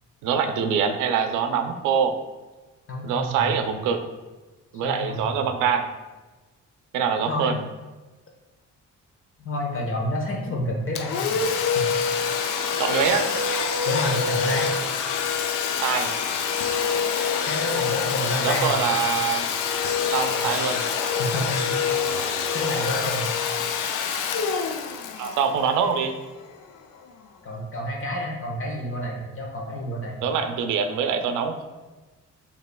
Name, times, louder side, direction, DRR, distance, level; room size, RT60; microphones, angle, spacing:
voice 1, 0.2-2.1 3.0-4.0 4.7-5.9 6.9-7.6 12.8-13.3 15.7-16.1 18.4-19.4 20.1-20.9 25.2-26.1 30.2-31.7, right 6 dB, 90° right, 7 dB, 0.5 m, -24 dB
voice 2, 2.9-3.8 4.8-5.4 7.3-7.6 9.4-11.9 12.2-12.3 13.8-14.7 17.4-18.8 20.4-20.5 21.2-21.9 22.5-23.3 27.4-30.2, left 1 dB, 45° left, 0 dB, 1.1 m, -29 dB
Domestic sounds home sounds, 11.0-26.4, left 6 dB, 85° left, 0.5 m, -26 dB
6.5 x 2.9 x 2.2 m, 1.2 s
cardioid pair, 90°, 30 cm